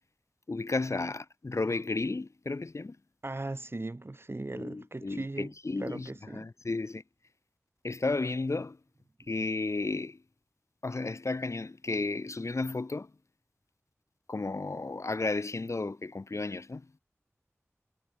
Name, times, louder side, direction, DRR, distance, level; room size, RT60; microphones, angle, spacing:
voice 1, 0.5-3.0 4.5-7.0 7.8-8.8 9.3-10.2 10.8-13.1 14.3-16.9, left 3 dB, 65° left, 2.2 m, -33 dB
voice 2, 3.2-6.5, right 2 dB, 50° right, 5.8 m, -38 dB
wide cardioid pair, 40°, 5 cm